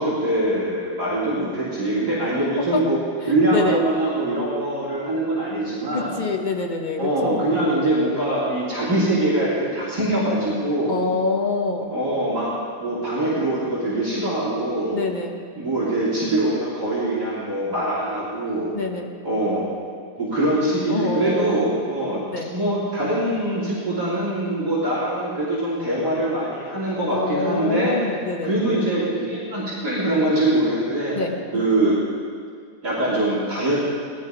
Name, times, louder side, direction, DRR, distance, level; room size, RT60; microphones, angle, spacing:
voice 1, 0.0-3.0 3.3-6.2 7.0-11.0 11.9-12.5 12.8-15.0 15.6-18.7 19.2-19.6 20.2-22.2 22.5-28.0 28.4-31.1 31.5-32.0 32.8-33.8, right 1 dB, 45° right, -9 dB, 4.0 m, -23 dB
voice 2, 3.5-3.8 5.9-7.4 10.9-11.9 14.9-15.4 18.7-19.1 20.9-21.8 22.3-22.5 27.1-28.5 31.1-31.7, left 3 dB, 30° left, 2 dB, 1.0 m, -25 dB
19.0 x 12.5 x 5.0 m, 2.2 s
omnidirectional pair, 2.4 m